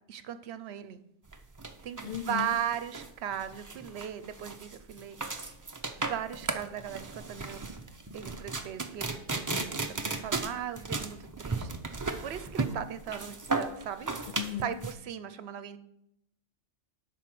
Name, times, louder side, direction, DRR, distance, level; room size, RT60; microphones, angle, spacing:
voice 1, 0.1-1.0 1.8-5.2 5.9-7.6 8.1-9.2 9.7-11.7 12.2-14.1 14.6-15.8, right 9 dB, 70° right, 12 dB, 0.9 m, -37 dB
sound 1, 1.3-14.9, right 3 dB, 25° right, 0.5 m, -35 dB
voice 2, 2.0-2.6 14.4-14.8, left 11 dB, 55° left, 7 dB, 0.6 m, -36 dB
11.0 x 4.2 x 5.9 m, 0.80 s
omnidirectional pair, 1.2 m